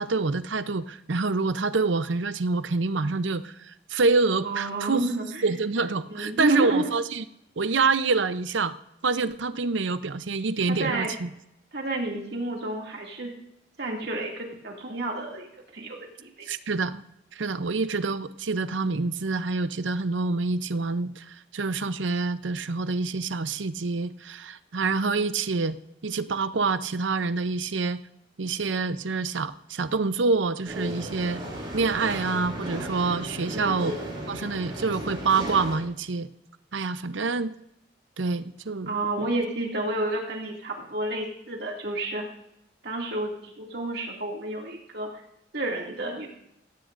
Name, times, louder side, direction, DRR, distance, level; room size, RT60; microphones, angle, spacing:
voice 1, 0.0-5.1 5.4-7.2 7.6-8.7 9.0-11.3 16.5-17.0 17.3-25.8 26.0-28.0 28.4-31.4 31.7-33.9 34.3-36.3 36.7-37.5 38.2-39.0, right 4 dB, 80° right, 13 dB, 0.7 m, -26 dB
voice 2, 4.4-5.5 6.1-6.8 10.7-11.1 11.7-13.3 13.8-15.5 15.7-16.5 33.5-33.8 38.9-42.2 42.8-45.1 45.5-46.3, right 2 dB, 60° right, 0 dB, 2.4 m, -30 dB
sound 1, 30.6-35.8, equal, 25° right, 6.2 m, -35 dB
16.5 x 15.5 x 2.6 m, 0.78 s
head